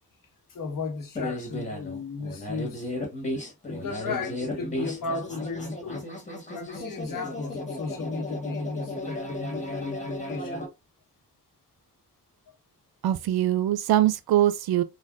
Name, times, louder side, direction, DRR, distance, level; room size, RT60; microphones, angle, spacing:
voice 1, 0.5-2.9 3.7-6.0 6.5-10.7, left 4 dB, 60° left, 1.1 m, -35 dB
sound 1, 1.2-10.7, left 1 dB, 20° left, 1.4 m, -34 dB
voice 2, 13.0-14.8, right 12 dB, 80° right, 0.5 m, -22 dB
3.4 x 2.2 x 2.4 m
cardioid pair, 70°, 37 cm